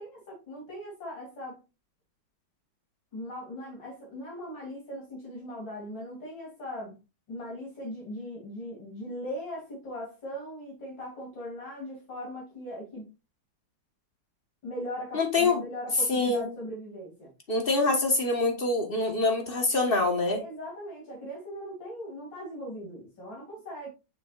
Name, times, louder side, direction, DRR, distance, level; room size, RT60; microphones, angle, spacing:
voice 1, 0.0-1.6 3.1-6.9 7.3-13.1 14.6-17.3 20.3-23.9, equal, 65° left, -3 dB, 3.5 m, -39 dB
voice 2, 15.1-15.6 16.1-16.5 17.5-20.4, left 3 dB, 30° left, 4 dB, 1.3 m, -25 dB
6.7 x 5.9 x 2.5 m, 0.27 s
omnidirectional pair, 2.2 m